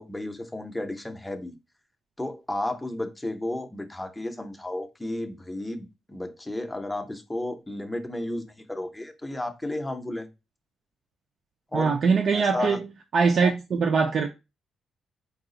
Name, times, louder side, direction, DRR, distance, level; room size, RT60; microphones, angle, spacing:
voice 1, 0.0-1.5 2.2-10.3 11.7-12.0 12.3-12.8, left 1 dB, 5° left, 0.6 m, -33 dB
voice 2, 11.7-12.8 13.1-14.3, right 5 dB, 50° right, 0.4 m, -22 dB
4.7 x 2.4 x 3.7 m
cardioid pair, 155°, 0 cm